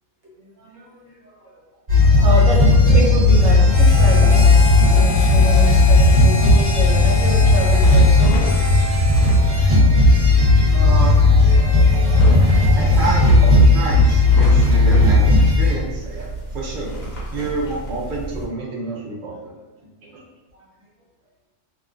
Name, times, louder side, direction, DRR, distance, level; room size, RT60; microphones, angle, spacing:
voice 1, 0.4-1.6 2.2-4.4 4.9-8.5 10.2-10.3 11.6-11.7 20.5-20.7, right 1 dB, 65° right, -4 dB, 1.1 m, -27 dB
sound 1, 1.9-15.8, left 2 dB, 30° right, 1.0 m, -14 dB
Harmonica, 3.7-9.7, left 4 dB, 35° left, 0.8 m, -30 dB
sound 2, 6.6-18.5, right 1 dB, 90° left, 1.2 m, -30 dB
voice 2, 10.7-11.2 12.7-16.3 16.5-16.9 17.3-19.5 20.0-20.2, right 2 dB, 50° right, -5 dB, 0.7 m, -28 dB
2.9 x 2.2 x 2.5 m, 1.1 s
omnidirectional pair, 1.3 m